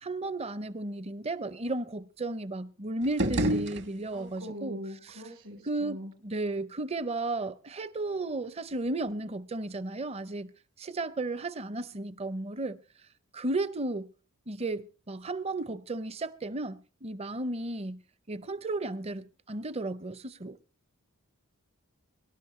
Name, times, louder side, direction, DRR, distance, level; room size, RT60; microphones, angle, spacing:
voice 1, 0.0-5.2 5.6-10.5 10.8-12.8 13.3-14.1 14.5-18.0 18.3-20.6, right 2 dB, 30° right, 0.6 m, -34 dB
sound 1, 3.0-4.4, right 1 dB, 55° right, 1.3 m, -30 dB
voice 2, 4.1-6.1, equal, 75° right, 3.6 m, -42 dB
24.0 x 11.5 x 3.1 m
head